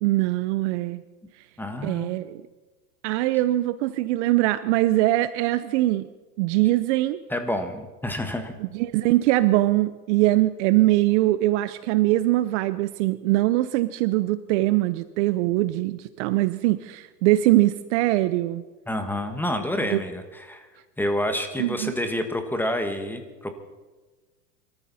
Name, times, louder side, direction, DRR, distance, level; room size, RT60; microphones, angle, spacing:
voice 1, 0.0-1.0 1.8-2.4 3.0-6.1 6.4-7.2 8.6-18.6 19.9-20.0 21.6-21.9, right 17 dB, 45° right, 14 dB, 0.7 m, -22 dB
voice 2, 1.6-2.1 7.3-8.5 18.9-20.7 21.0-23.5, left 1 dB, 5° left, 7 dB, 1.5 m, -28 dB
24.0 x 14.0 x 4.2 m, 1.3 s
hypercardioid pair, 125°, 49 cm